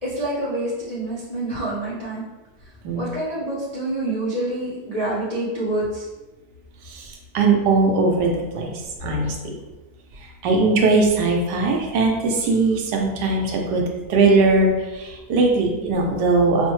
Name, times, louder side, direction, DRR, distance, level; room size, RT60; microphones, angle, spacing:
voice 1, 0.0-2.2 2.9-6.1, right 1 dB, 65° left, -8 dB, 0.3 m, -27 dB
voice 2, 6.8-9.4 10.2-13.8 14.1-16.7, right 3 dB, 90° right, 1 dB, 1.3 m, -20 dB
4.8 x 2.1 x 3.1 m, 1.1 s
omnidirectional pair, 1.8 m